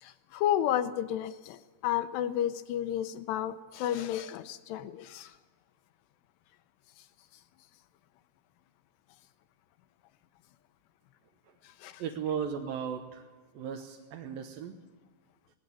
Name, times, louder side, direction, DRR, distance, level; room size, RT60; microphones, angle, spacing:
voice 1, 0.0-5.3 11.8-12.0, left 11 dB, 80° left, 11 dB, 2.6 m, -32 dB
voice 2, 12.0-13.2 13.6-14.8, right 7 dB, 70° right, 3 dB, 2.4 m, -36 dB
18.5 x 17.0 x 8.1 m, 1.4 s
omnidirectional pair, 5.2 m